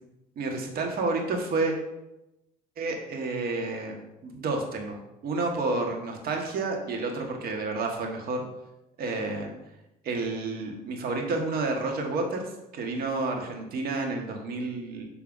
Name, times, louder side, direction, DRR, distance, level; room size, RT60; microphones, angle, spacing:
voice 1, 0.3-1.8 2.8-3.9 4.2-8.4 9.0-9.5 10.0-15.0, right 3 dB, 65° right, 2 dB, 1.7 m, -30 dB
7.4 x 3.4 x 6.1 m, 0.93 s
cardioid pair, 110°, 17 cm